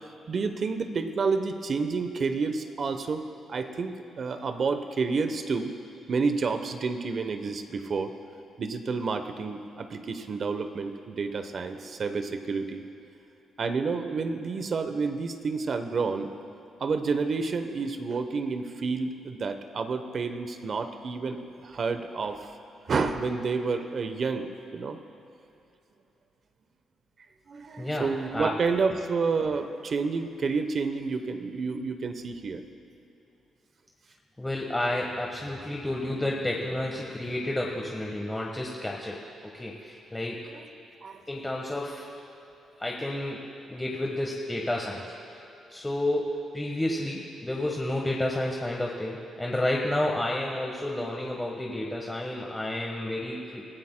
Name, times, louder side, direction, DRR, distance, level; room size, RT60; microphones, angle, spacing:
voice 1, 0.3-5.7 6.1-8.1 8.6-12.8 13.6-16.3 16.8-22.6 22.9-25.0 27.5-32.6 40.5-40.7 41.0-41.2, right 4 dB, 50° right, 8 dB, 0.9 m, -29 dB
voice 2, 27.8-28.5 34.4-40.4 41.3-42.1 42.8-43.4 43.7-45.1 45.3-45.4 45.7-53.6, left 1 dB, 10° left, -2 dB, 1.3 m, -31 dB
23.5 x 14.5 x 2.2 m, 2.9 s
cardioid pair, 85°, 0 cm